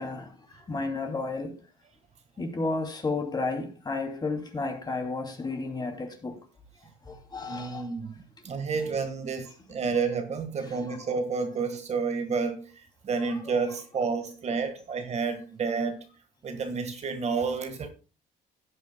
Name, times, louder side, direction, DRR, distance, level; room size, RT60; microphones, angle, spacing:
voice 1, 0.0-1.6 2.4-6.5 7.0-7.9 8.4-8.5 10.6-11.0 13.2-13.5, left 3 dB, 25° left, 2.7 m, -33 dB
voice 2, 7.4-8.1 8.4-12.7 13.0-16.0 16.4-17.9, right 5 dB, 40° right, 1.6 m, -30 dB
17.5 x 8.6 x 2.2 m
cardioid pair, 110°, 17 cm